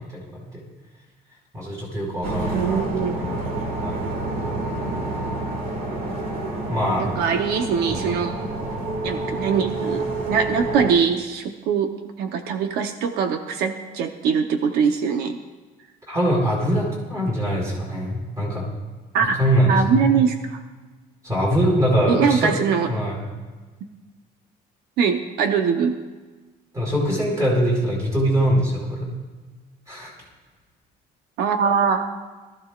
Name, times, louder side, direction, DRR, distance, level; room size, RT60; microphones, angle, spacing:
voice 1, 1.5-3.4 3.8-4.0 6.6-7.1 16.1-18.6 19.4-20.1 21.2-22.5 22.9-23.2 26.7-29.2 29.9-30.1, equal, 20° right, -3 dB, 4.9 m, -22 dB
sound 1, 2.2-10.9, right 2 dB, 65° right, 1.9 m, -28 dB
voice 2, 2.5-3.2 7.0-8.3 9.0-15.4 19.1-19.4 19.7-20.6 22.1-22.9 25.0-26.0 31.4-32.2, right 6 dB, 85° right, 6 dB, 0.8 m, -22 dB
22.0 x 14.0 x 2.4 m, 1.3 s
cardioid pair, 165°, 16 cm